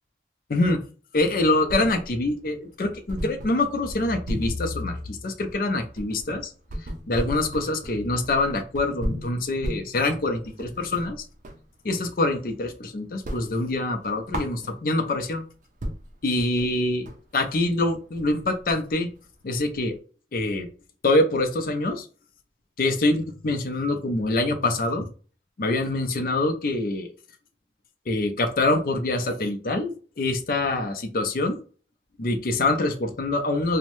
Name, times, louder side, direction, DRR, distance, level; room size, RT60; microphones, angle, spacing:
voice 1, 0.5-0.8 1.1-6.5 7.1-11.2 11.8-15.4 16.2-17.1 17.3-19.1 19.4-19.9 20.3-20.7 21.0-22.1 22.8-25.1 25.6-27.1 28.1-31.6 32.2-33.8, left 2 dB, 50° left, 7 dB, 0.5 m, -25 dB
sound 1, 1.2-2.3 2.6-2.7 3.1-11.7 12.1-12.8 13.1-15.1 15.5-15.6 15.8-20.0, equal, 45° right, 0.4 m, -36 dB
2.7 x 2.1 x 3.0 m, 0.38 s
head